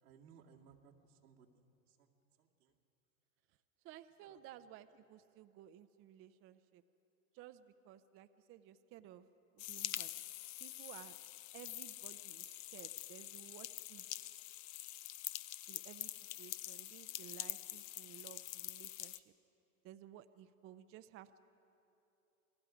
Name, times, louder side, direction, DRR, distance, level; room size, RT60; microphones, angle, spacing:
voice 1, 0.0-2.1 2.4-2.7 4.2-4.4, right 6 dB, 90° right, -2 dB, 2.3 m, -64 dB
voice 2, 3.8-6.8 7.3-9.3 9.6-10.1 10.6-11.1 11.5-14.3 15.7-19.2 19.8-21.4, right 12 dB, 30° right, 10 dB, 0.6 m, -56 dB
sound 1, 9.6-19.2, left 15 dB, 50° left, 0.7 m, -46 dB
28.5 x 20.0 x 5.0 m, 2.9 s
hypercardioid pair, 115°, 43 cm